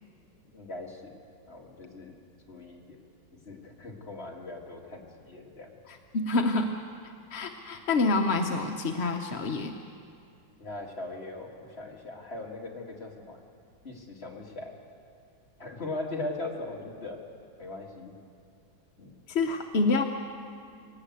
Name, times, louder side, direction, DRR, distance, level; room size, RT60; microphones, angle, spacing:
voice 1, 0.5-1.1 1.5-2.1 2.5-3.0 3.5-5.7 10.6-13.4 13.8-14.7 15.6-17.2 17.6-18.1 19.0-19.1, left 2 dB, 30° left, 0 dB, 2.5 m, -39 dB
voice 2, 5.9-6.8 7.3-9.7 19.3-20.0, left 3 dB, 50° left, 4 dB, 0.8 m, -27 dB
19.5 x 18.5 x 8.1 m, 2.4 s
omnidirectional pair, 2.2 m